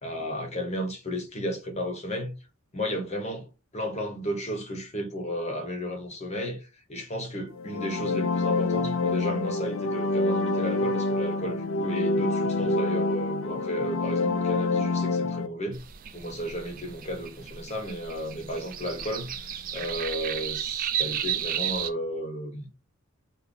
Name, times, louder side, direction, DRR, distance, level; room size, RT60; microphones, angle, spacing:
voice 1, 0.0-2.4 2.7-15.8 16.1-22.7, equal, 30° left, 0.9 m, -33 dB
sound 1, 7.5-15.5, left 3 dB, 70° left, 0.5 m, -27 dB
sound 2, 15.7-21.9, right 9 dB, 40° right, 0.4 m, -33 dB
3.8 x 2.2 x 3.5 m
head